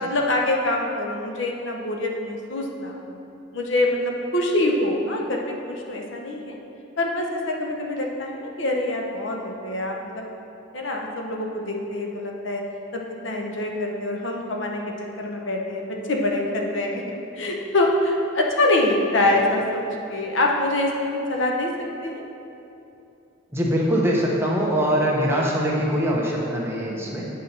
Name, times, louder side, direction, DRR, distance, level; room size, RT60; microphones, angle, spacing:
voice 1, 0.0-3.2 3.5-5.4 5.7-6.6 7.0-10.2 10.7-12.6 12.9-14.8 15.2-22.2, left 1 dB, 70° left, 1 dB, 0.8 m, -25 dB
voice 2, 23.5-27.3, equal, 10° right, -3 dB, 0.9 m, -22 dB
8.7 x 5.5 x 4.2 m, 2.8 s
head